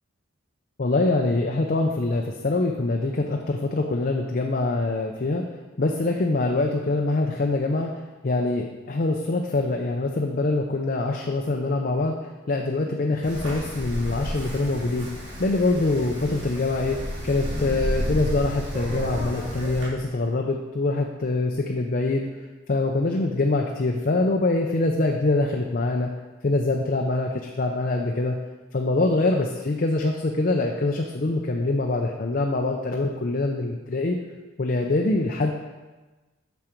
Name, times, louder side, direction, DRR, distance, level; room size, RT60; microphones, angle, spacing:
voice 1, 0.8-5.4 5.8-7.9 8.2-12.2 12.5-17.0 17.2-22.3 22.7-26.1 26.4-28.4 28.7-34.2 34.6-35.5, left 2 dB, 45° left, 1 dB, 0.5 m, -24 dB
Wind, 13.2-19.8, equal, 55° right, 3.0 m, -31 dB
8.7 x 6.1 x 4.5 m, 1.2 s
head